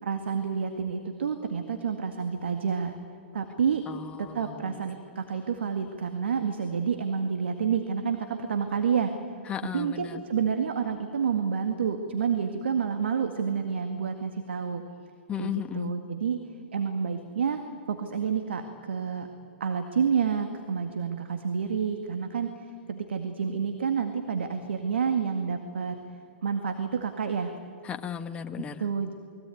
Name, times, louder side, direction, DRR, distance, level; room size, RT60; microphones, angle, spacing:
voice 1, 0.0-3.0 3.3-3.8 4.2-9.1 9.7-14.8 15.4-16.4 16.7-17.6 17.9-19.3 19.6-22.5 22.9-26.0 26.4-27.5 28.8-29.1, right 6 dB, 75° right, 6 dB, 2.0 m, -29 dB
voice 2, 3.9-4.8 9.5-10.2 15.3-15.9 27.8-28.8, left 9 dB, 20° left, 8 dB, 1.5 m, -35 dB
28.5 x 21.5 x 9.3 m, 2.6 s
hypercardioid pair, 120°, 6 cm